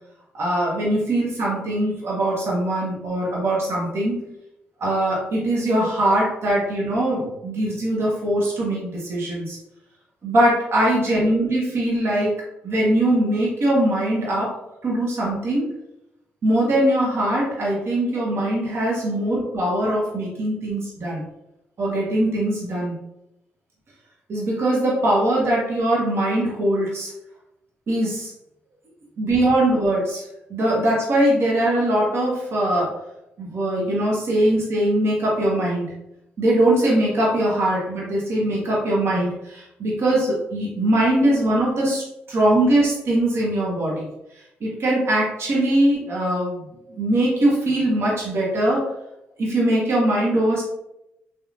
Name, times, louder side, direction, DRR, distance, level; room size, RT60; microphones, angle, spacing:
voice 1, 0.3-4.2 4.8-9.6 10.2-12.3 12.6-14.5 14.8-15.6 16.4-21.2 21.8-22.9 24.3-27.1 27.9-28.3 29.2-30.2 30.5-32.9 33.4-35.9 36.4-44.1 44.6-48.9 49.4-50.6, right 1 dB, 55° right, -4 dB, 0.9 m, -21 dB
3.0 x 2.3 x 2.5 m, 0.86 s
supercardioid pair, 55°, 5 cm